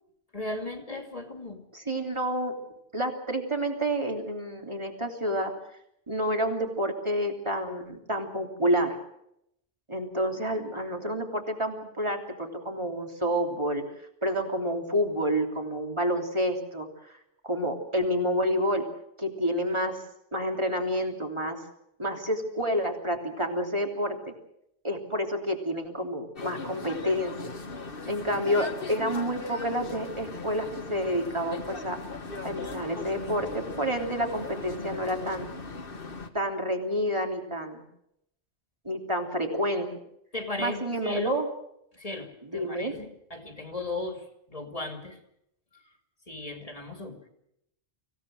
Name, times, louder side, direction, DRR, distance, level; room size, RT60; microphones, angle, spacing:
voice 1, 0.3-1.6 40.3-41.4 41.9-45.2 45.7-45.8 46.3-47.2, left 2 dB, 35° left, 5 dB, 2.7 m, -36 dB
voice 2, 1.7-2.6 2.9-5.6 6.1-9.0 9.9-13.8 14.2-17.1 17.4-18.9 19.2-20.0 20.3-21.6 22.0-24.3 24.8-27.4 28.1-32.0 32.4-35.5 36.3-37.8 38.8-39.9 40.6-41.5 42.4-43.0, equal, 25° right, 3 dB, 3.2 m, -29 dB
sound 1, 26.4-36.3, left 3 dB, 55° left, 1.8 m, -39 dB
25.0 x 16.5 x 7.8 m, 0.78 s
omnidirectional pair, 1.1 m